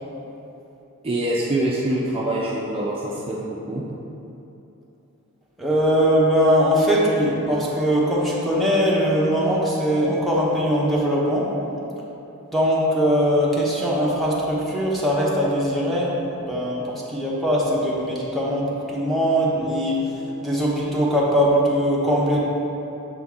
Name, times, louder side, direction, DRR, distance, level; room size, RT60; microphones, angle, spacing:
voice 1, 1.0-3.8, right 1 dB, 25° right, -5 dB, 0.5 m, -25 dB
voice 2, 5.6-11.5 12.5-20.0 20.4-22.4, equal, ahead, -6 dB, 0.9 m, -21 dB
6.8 x 4.0 x 3.5 m, 2.9 s
head